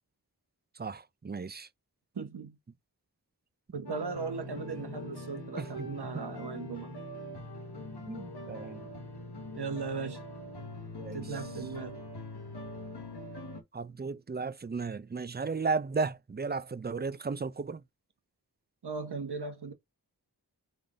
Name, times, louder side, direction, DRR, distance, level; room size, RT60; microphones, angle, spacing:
voice 1, 0.8-1.7 5.6-5.9 6.1-6.2 8.1-8.8 9.7-9.8 11.0-11.3 13.7-17.8, right 4 dB, 25° right, 0.5 m, -35 dB
voice 2, 2.1-2.6 3.7-6.9 9.6-10.2 11.1-12.0 18.8-19.7, right 5 dB, 80° right, 1.2 m, -37 dB
sound 1, 3.9-13.6, left 1 dB, 80° left, 1.2 m, -43 dB
3.8 x 3.6 x 3.8 m
wide cardioid pair, 45°, 39 cm